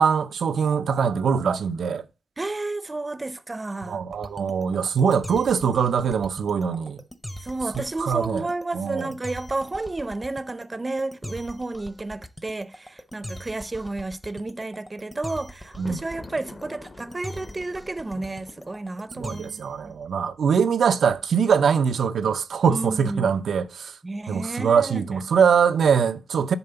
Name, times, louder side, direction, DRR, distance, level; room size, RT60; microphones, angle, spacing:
voice 1, 0.0-2.0 3.9-7.0 8.0-8.5 8.7-9.1 15.8-16.0 19.2-23.9 24.3-26.6, right 6 dB, 80° right, 0.5 m, -22 dB
voice 2, 2.4-4.0 7.4-19.9 22.7-23.4 24.0-25.2, right 2 dB, 25° right, 0.6 m, -32 dB
sound 1, 4.1-19.8, equal, 10° left, 0.8 m, -41 dB
Thunder, 15.6-19.8, left 2 dB, 35° left, 1.0 m, -46 dB
7.0 x 4.3 x 6.7 m
cardioid pair, 90°, 0 cm